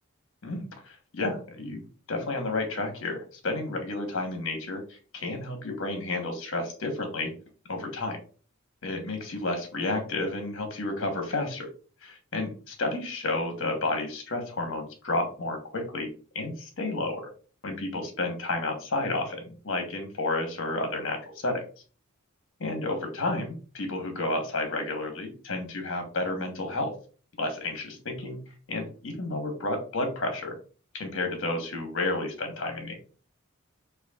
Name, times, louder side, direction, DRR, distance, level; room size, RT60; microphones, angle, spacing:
voice 1, 0.4-7.3 7.7-8.2 8.8-11.7 12.0-16.1 16.3-17.3 17.6-21.6 22.6-26.9 27.4-28.4 28.7-30.5 30.9-33.0, left 2 dB, 65° left, 4 dB, 1.1 m, -31 dB
5.4 x 2.5 x 2.3 m, 0.39 s
head